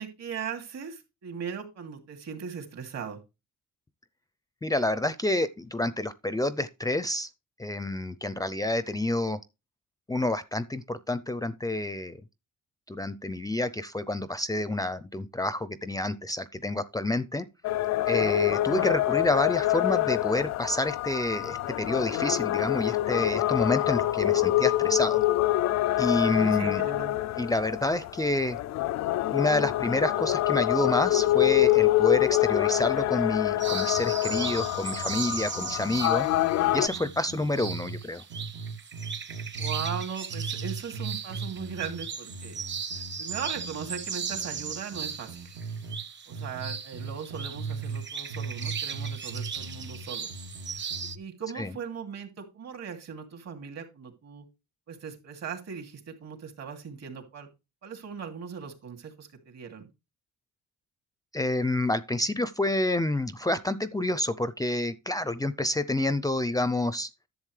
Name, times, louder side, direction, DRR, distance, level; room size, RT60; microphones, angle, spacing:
voice 1, 0.0-3.2 18.6-18.9 26.4-27.1 39.6-42.6 43.0-45.6 46.3-50.3 50.7-54.4 54.9-57.5 57.8-59.9, right 6 dB, 60° right, 2.7 m, -39 dB
voice 2, 4.6-7.3 7.6-9.4 10.1-12.2 12.9-17.5 18.1-25.2 26.0-26.8 27.4-28.6 29.3-36.3 36.7-38.2 51.6-51.7 61.3-67.1, left 1 dB, 10° left, 0.5 m, -28 dB
sound 1, 17.6-36.9, left 15 dB, 65° left, 0.4 m, -26 dB
sound 2, 33.6-51.2, right 6 dB, 40° right, 1.1 m, -37 dB
sound 3, 33.9-38.0 38.3-40.0 40.3-46.0 46.3-48.0 48.3-51.2, right 4 dB, 75° right, 2.3 m, -38 dB
11.0 x 7.2 x 3.2 m
cardioid pair, 90°, 30 cm